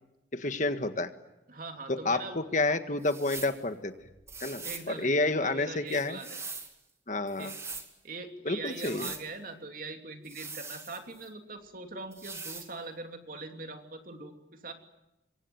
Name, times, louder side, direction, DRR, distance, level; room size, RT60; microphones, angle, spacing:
voice 1, 0.3-1.1 1.9-3.9 4.4-6.2 7.1-7.5 8.4-9.1, left 2 dB, 45° left, 9 dB, 1.6 m, -29 dB
voice 2, 1.5-2.7 4.6-6.4 7.4-7.6 8.0-14.7, right 3 dB, 50° right, 5 dB, 2.9 m, -42 dB
sound 1, 3.0-3.6 4.3-4.9 5.9-6.7 7.3-7.9 8.7-9.3 10.2-11.3 12.1-12.7, right 4 dB, 15° right, 2.3 m, -42 dB
26.5 x 23.5 x 9.3 m, 0.95 s
head